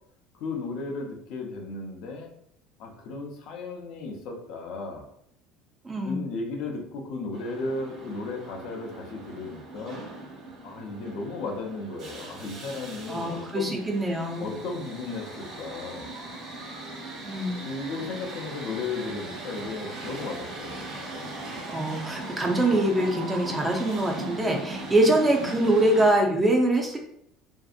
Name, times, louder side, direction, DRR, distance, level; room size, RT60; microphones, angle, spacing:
voice 1, 0.3-2.3 2.8-5.1 6.0-10.0 10.6-13.8 14.4-16.1 17.6-20.9, left 3 dB, 65° left, 2 dB, 0.5 m, -35 dB
voice 2, 5.8-6.3 13.1-14.5 17.2-17.6 21.7-27.0, right 1 dB, 15° right, 1 dB, 0.5 m, -24 dB
sound 1, 7.3-26.1, right 1 dB, 55° right, 1.1 m, -39 dB
2.6 x 2.4 x 2.4 m, 0.71 s
supercardioid pair, 120°, 0 cm